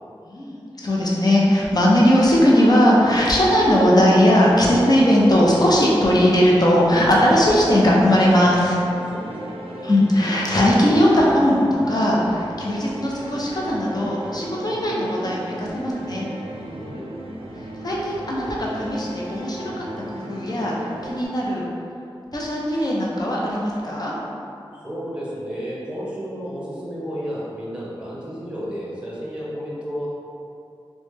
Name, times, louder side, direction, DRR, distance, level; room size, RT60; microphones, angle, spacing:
voice 1, 0.3-8.8 9.8-11.6 11.9-16.3 17.8-19.9 20.1-21.7 22.3-24.1, equal, 45° left, -4 dB, 0.6 m, -18 dB
sound 1, 3.0-21.3, right 1 dB, 90° right, 0.4 m, -36 dB
voice 2, 9.4-9.7 16.7-17.1 24.8-30.1, equal, 10° right, -8 dB, 0.9 m, -32 dB
3.0 x 2.1 x 3.2 m, 2.6 s
wide cardioid pair, 50°, 9 cm